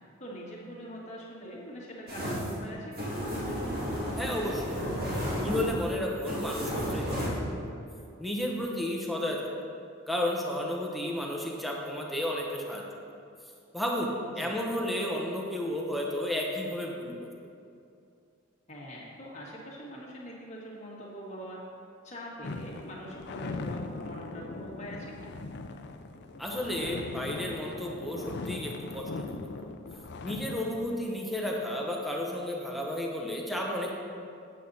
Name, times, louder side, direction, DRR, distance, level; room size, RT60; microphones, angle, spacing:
voice 1, 0.2-3.1 14.2-14.6 18.7-21.6 22.0-25.3, equal, 35° left, -4 dB, 1.8 m, -43 dB
sound 1, 2.1-7.3, equal, 45° right, 2.2 m, -33 dB
voice 2, 4.2-4.8 5.3-7.4 8.2-9.4 10.1-12.8 13.7-17.3 26.4-29.4 30.2-34.0, left 1 dB, ahead, -2 dB, 0.9 m, -32 dB
sound 2, 22.4-31.0, left 3 dB, 55° left, 0.5 m, -40 dB
8.3 x 8.0 x 4.1 m, 2.5 s
head